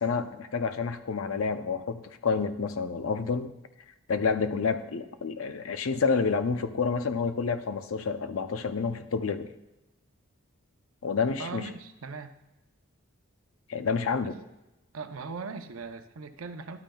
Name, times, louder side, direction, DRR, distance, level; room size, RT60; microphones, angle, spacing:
voice 1, 0.0-3.5 4.1-9.5 11.0-11.7 13.7-14.4, left 5 dB, 80° left, 10 dB, 0.6 m, -29 dB
voice 2, 11.4-12.3 14.9-16.8, right 4 dB, 85° right, 8 dB, 0.7 m, -39 dB
11.5 x 8.9 x 2.3 m, 0.96 s
head